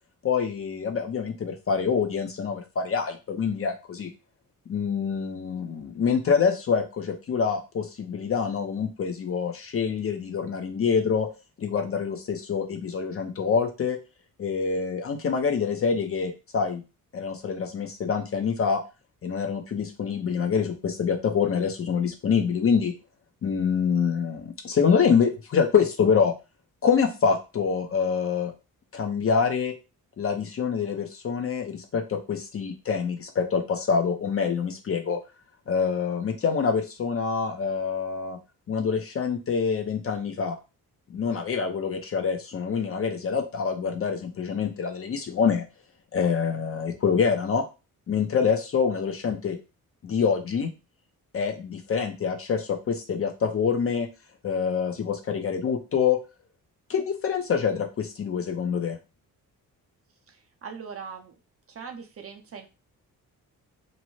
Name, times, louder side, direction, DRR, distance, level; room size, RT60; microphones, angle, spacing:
voice 1, 0.2-4.1 4.7-11.3 11.6-14.0 14.4-16.8 17.1-18.8 19.2-22.9 23.4-26.3 26.8-28.5 28.9-29.7 30.2-35.2 35.7-38.4 38.7-40.6 41.1-45.6 46.1-47.6 48.1-49.6 50.0-50.7 51.3-54.1 54.4-56.2 56.9-59.0, left 6 dB, 40° left, 6 dB, 0.5 m, -26 dB
voice 2, 60.3-61.3 61.7-62.7, right 6 dB, 40° right, 3 dB, 0.5 m, -41 dB
2.6 x 2.0 x 3.0 m, 0.29 s
cardioid pair, 105°, 36 cm